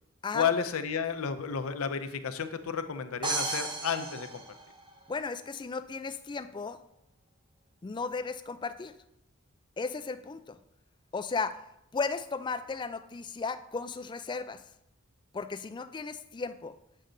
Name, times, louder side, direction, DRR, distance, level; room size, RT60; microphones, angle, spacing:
voice 1, 0.3-4.4, left 6 dB, 85° left, 8 dB, 0.6 m, -32 dB
sound 1, 3.2-5.2, right 3 dB, 25° right, 0.8 m, -34 dB
voice 2, 5.1-6.8 7.8-8.9 9.8-10.6 11.1-11.6 11.9-14.6 15.3-16.7, left 4 dB, 20° left, 11 dB, 0.3 m, -35 dB
8.0 x 6.5 x 3.8 m, 0.83 s
head